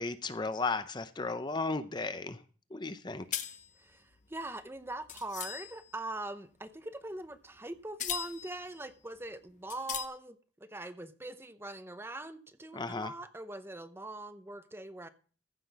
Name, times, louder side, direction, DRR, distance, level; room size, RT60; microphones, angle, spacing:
voice 1, 0.0-2.4 2.7-3.3 12.7-13.1, left 3 dB, 25° left, 12 dB, 0.6 m, -35 dB
sound 1, 3.3-6.0 7.4-7.6 8.0-8.7 9.2-9.3 9.7-10.0, left 9 dB, 40° left, 0.9 m, -39 dB
voice 2, 3.8-15.1, right 2 dB, 15° right, 11 dB, 0.7 m, -42 dB
15.0 x 5.9 x 5.9 m, 0.40 s
head